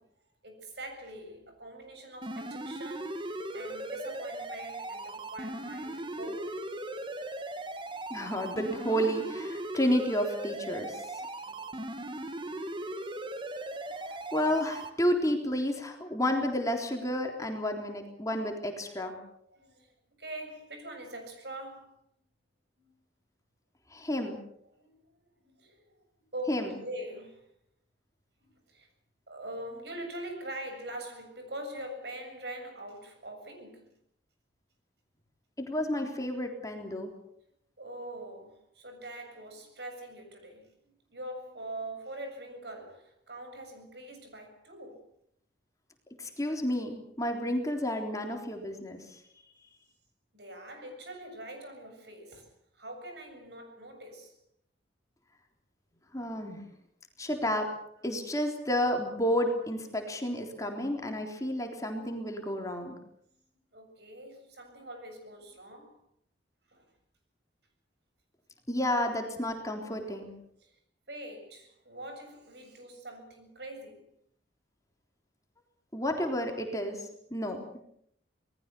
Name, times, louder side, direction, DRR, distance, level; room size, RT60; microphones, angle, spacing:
voice 1, 0.4-6.6 11.2-11.7 19.5-19.9 20.2-21.9 22.8-22.9 24.8-25.0 25.4-25.8 26.2-27.5 28.4-28.9 29.3-33.9 37.8-45.1 50.3-54.4 58.0-58.1 63.7-66.0 66.7-66.8 70.6-70.7 71.1-74.1, right 1 dB, 65° right, 7.3 m, -43 dB
sound 1, 2.2-14.9, right 1 dB, 25° right, 1.8 m, -38 dB
voice 2, 8.1-11.3 14.3-19.2 23.9-24.4 26.5-26.7 35.6-37.1 46.2-49.2 56.1-56.6 57.2-57.7 58.0-62.9 68.7-70.3 75.9-77.6, equal, 20° left, 3.6 m, -31 dB
27.5 x 20.0 x 6.9 m
head